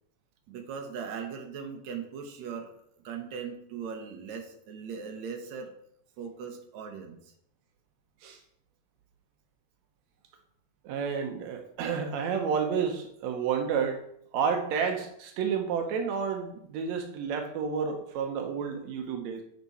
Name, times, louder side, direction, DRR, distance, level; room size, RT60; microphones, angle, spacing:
voice 1, 0.5-2.7 3.0-5.7 6.2-7.3, right 6 dB, 70° right, 4 dB, 1.7 m, -39 dB
voice 2, 10.8-14.0 14.3-19.4, right 6 dB, 85° right, 4 dB, 1.5 m, -30 dB
8.4 x 5.3 x 4.1 m, 0.70 s
omnidirectional pair, 4.3 m